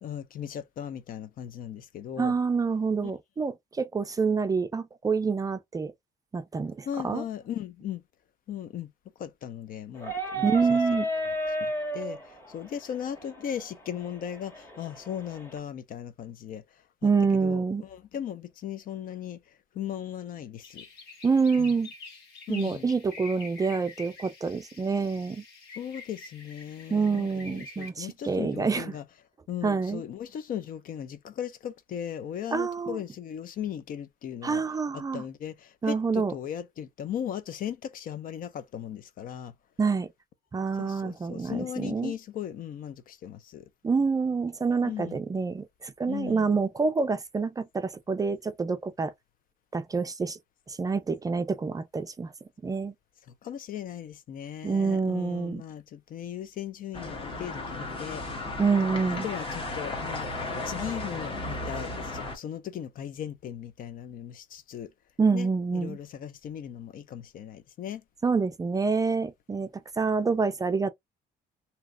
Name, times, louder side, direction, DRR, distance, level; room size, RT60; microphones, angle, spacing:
voice 1, 0.0-2.3 3.0-3.1 6.9-8.0 8.5-8.9 9.2-10.8 11.6-20.9 21.6-21.7 22.5-22.9 25.8-29.0 29.5-34.6 34.9-39.5 40.8-43.7 44.8-45.2 46.1-46.5 53.4-58.2 59.0-64.9 65.3-68.0, left 9 dB, 55° left, 0.6 m, -38 dB
voice 2, 2.2-5.9 6.3-7.2 10.4-11.1 17.0-17.8 21.2-21.9 22.5-25.4 26.9-28.9 29.6-30.0 32.5-33.0 34.4-35.2 35.8-36.3 39.8-40.1 40.5-42.1 43.8-49.1 49.7-50.4 50.7-52.3 52.6-52.9 54.6-55.6 58.6-59.3 65.2-66.0 68.2-69.7 70.0-70.9, right 4 dB, 20° right, 0.4 m, -27 dB
sound 1, 10.0-15.6, right 1 dB, 15° left, 1.6 m, -33 dB
sound 2, 20.6-27.9, left 3 dB, 75° left, 1.3 m, -47 dB
sound 3, 56.9-62.4, left 2 dB, 30° left, 1.2 m, -34 dB
3.0 x 2.8 x 2.5 m
cardioid pair, 110°, 17 cm